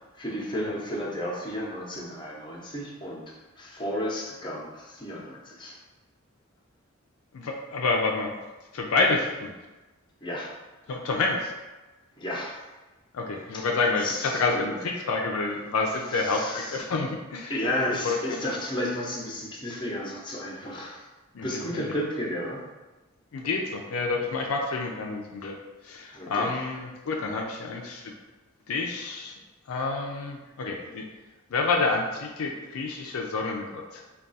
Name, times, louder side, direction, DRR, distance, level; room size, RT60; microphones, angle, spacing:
voice 1, 0.2-3.2 3.6-5.7 10.2-10.5 12.2-12.6 13.5-13.6 14.0-14.8 16.1-16.8 17.5-21.0 21.4-22.6 26.1-26.5, left 1 dB, 20° left, -4 dB, 0.7 m, -32 dB
voice 2, 7.3-8.3 8.7-9.5 10.9-11.5 13.1-17.5 18.0-18.4 21.3-21.8 23.3-25.6 25.8-28.1 28.7-29.3 29.7-31.1 31.5-34.0, left 3 dB, 75° left, 1 dB, 0.4 m, -28 dB
3.5 x 2.3 x 4.0 m, 1.2 s
head